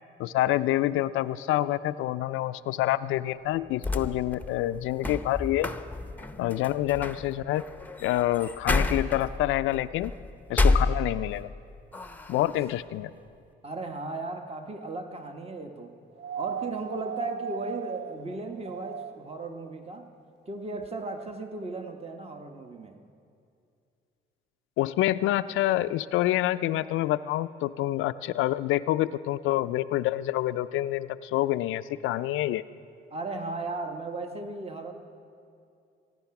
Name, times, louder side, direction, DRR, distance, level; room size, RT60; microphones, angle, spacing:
voice 1, 0.2-5.7 6.4-7.6 8.0-10.1 10.5-11.5 12.3-13.1 24.8-32.6, left 15 dB, 90° left, 13 dB, 0.4 m, -27 dB
sound 1, 3.5-11.5 11.9-12.7, left 2 dB, 10° left, 0.7 m, -30 dB
voice 2, 13.6-15.9 16.3-20.1 20.5-23.0 33.1-34.9, right 3 dB, 30° right, 5 dB, 1.2 m, -36 dB
sound 2, 16.2-19.4 20.8-20.9, right 8 dB, 60° right, 0.4 m, -37 dB
24.0 x 9.6 x 5.9 m, 2.5 s
cardioid pair, 90°, 20 cm